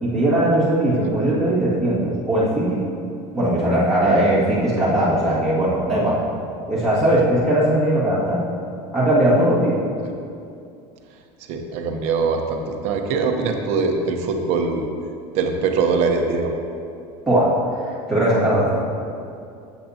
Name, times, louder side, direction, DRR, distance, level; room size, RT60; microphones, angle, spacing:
voice 1, 0.0-2.8 3.3-6.2 6.7-8.4 8.9-9.8 17.3-17.5 18.1-18.7, right 1 dB, ahead, -11 dB, 2.0 m, -19 dB
voice 2, 11.5-14.8 15.3-16.6, right 4 dB, 45° right, 3 dB, 0.9 m, -22 dB
13.5 x 8.1 x 2.8 m, 2.5 s
cardioid pair, 175°, 15 cm